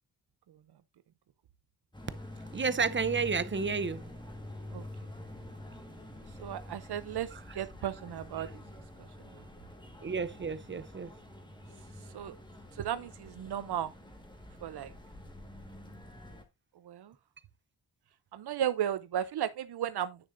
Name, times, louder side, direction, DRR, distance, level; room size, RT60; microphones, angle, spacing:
sound 1, 1.9-16.4, left 1 dB, 10° left, 1.5 m, -47 dB
voice 1, 2.5-4.0 7.3-7.6 8.4-8.5 10.0-11.1, right 5 dB, 30° right, 0.5 m, -31 dB
voice 2, 6.4-7.3 7.6-8.5 12.1-12.4 12.8-13.9 14.6-14.9 16.9-17.1 18.3-20.2, right 10 dB, 90° right, 0.6 m, -34 dB
10.0 x 6.4 x 2.5 m
wide cardioid pair, 150°, 38 cm